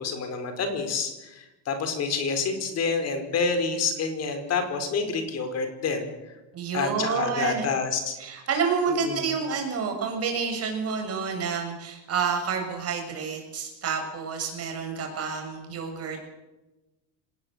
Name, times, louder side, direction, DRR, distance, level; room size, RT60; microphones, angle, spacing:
voice 1, 0.0-6.1 6.7-8.2 8.9-9.3, left 5 dB, 40° left, 7 dB, 4.9 m, -28 dB
voice 2, 6.5-7.7 8.2-16.2, right 5 dB, 35° right, 3 dB, 7.6 m, -29 dB
26.0 x 19.0 x 8.2 m, 1.0 s
cardioid pair, 160°, 41 cm